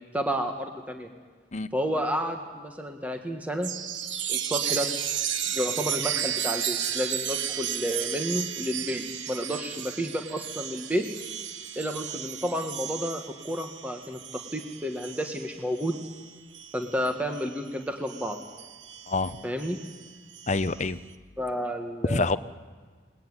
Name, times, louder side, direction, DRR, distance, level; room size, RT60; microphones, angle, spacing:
voice 1, 0.1-1.1 1.7-3.7 4.3-4.9 5.5-11.1 11.7-16.0 16.7-18.4 19.4-19.8 21.4-22.3, equal, 10° right, 4 dB, 1.7 m, -31 dB
Chime, 3.6-17.6 18.1-20.9, right 9 dB, 80° right, 1.2 m, -34 dB
voice 2, 19.1-19.4 20.5-21.0 22.1-22.4, left 3 dB, 40° left, 13 dB, 0.8 m, -26 dB
26.5 x 20.5 x 9.9 m, 1.5 s
head